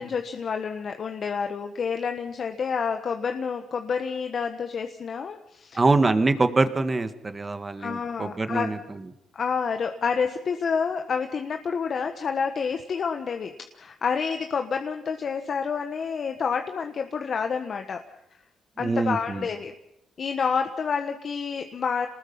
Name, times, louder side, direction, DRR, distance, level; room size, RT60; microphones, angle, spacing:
voice 1, 0.0-5.8 7.8-8.7 9.3-18.0 18.8-19.7 20.2-22.1, left 6 dB, 50° left, 6 dB, 1.4 m, -28 dB
voice 2, 5.7-9.0 18.8-19.5, right 3 dB, 25° right, 9 dB, 1.9 m, -24 dB
27.5 x 20.0 x 5.6 m, 0.83 s
cardioid pair, 90°, 0 cm